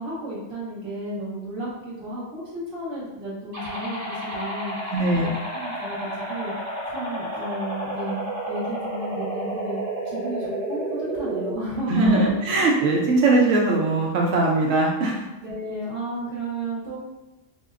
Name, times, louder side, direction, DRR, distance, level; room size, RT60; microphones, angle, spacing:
voice 1, 0.0-6.5 6.9-9.8 10.0-12.3 15.4-17.0, right 1 dB, 45° right, -7 dB, 1.3 m, -33 dB
sound 1, 3.5-11.5, right 1 dB, 65° right, 1.5 m, -31 dB
voice 2, 4.9-5.3 11.9-15.2, right 2 dB, 85° right, -2 dB, 1.0 m, -20 dB
3.9 x 2.1 x 2.4 m, 1.1 s
omnidirectional pair, 1.3 m